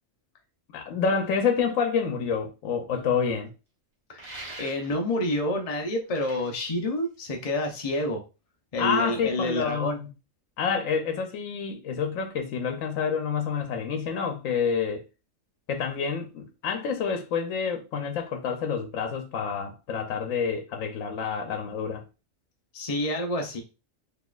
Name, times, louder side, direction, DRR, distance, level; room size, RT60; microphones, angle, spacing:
voice 1, 0.7-3.5 8.8-10.1 10.6-15.0 15.7-22.0, left 6 dB, 80° left, 1.0 m, -28 dB
sound 1, 4.2-5.2 5.9-7.6, right 2 dB, 30° right, 1.2 m, -44 dB
voice 2, 4.6-8.2 8.7-10.0 22.7-23.6, left 1 dB, 45° left, 0.5 m, -28 dB
4.0 x 2.9 x 2.3 m
omnidirectional pair, 1.3 m